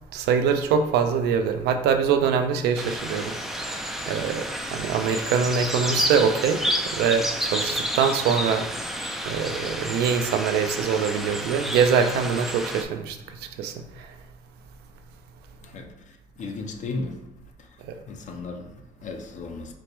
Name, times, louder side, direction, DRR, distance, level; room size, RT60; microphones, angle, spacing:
voice 1, 0.1-6.6 6.9-8.7 9.3-14.2 17.8-17.9, right 6 dB, 75° right, 0.4 m, -24 dB
sound 1, 2.8-12.8, equal, ahead, 0.3 m, -30 dB
voice 2, 15.6-17.2 17.6-19.7, left 3 dB, 45° left, 0.6 m, -36 dB
4.1 x 2.1 x 3.0 m
cardioid pair, 110°, 17 cm